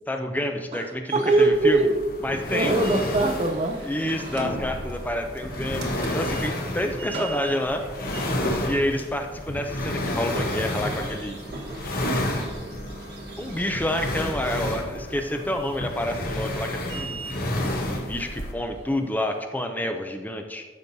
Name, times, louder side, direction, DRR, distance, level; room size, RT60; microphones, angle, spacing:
voice 1, 0.1-1.8 2.2-2.7 3.9-7.9 8.7-11.4 13.4-20.7, left 1 dB, 10° left, 5 dB, 0.4 m, -29 dB
voice 2, 1.1-2.0 2.5-3.8, right 2 dB, 35° right, 7 dB, 0.6 m, -21 dB
sound 1, 1.1-19.4, right 2 dB, 65° right, 1.3 m, -41 dB
sound 2, 1.5-18.5, left 1 dB, 55° left, 1.0 m, -31 dB
13.0 x 5.3 x 2.7 m, 1.4 s
head